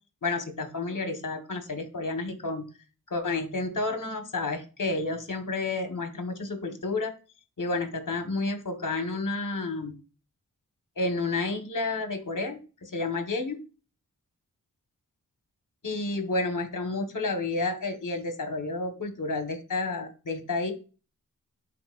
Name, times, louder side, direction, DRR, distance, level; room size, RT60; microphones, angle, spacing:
voice 1, 0.2-2.7 3.1-7.1 7.6-10.0 11.0-13.6 15.8-20.7, left 3 dB, 65° left, 7 dB, 1.6 m, -30 dB
11.0 x 4.5 x 2.5 m, 0.34 s
wide cardioid pair, 75°, 34 cm